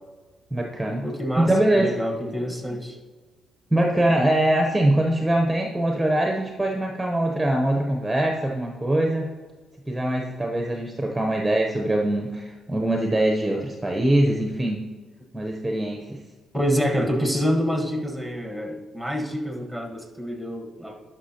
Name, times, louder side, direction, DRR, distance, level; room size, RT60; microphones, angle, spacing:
voice 1, 0.5-1.0 1.4-1.9 3.7-9.3 9.8-14.8 15.3-16.2, right 1 dB, 10° right, 1 dB, 0.8 m, -23 dB
voice 2, 1.0-3.0 16.5-21.0, equal, 5° left, 2 dB, 1.4 m, -27 dB
11.5 x 5.6 x 2.9 m, 1.4 s
cardioid pair, 90°, 0 cm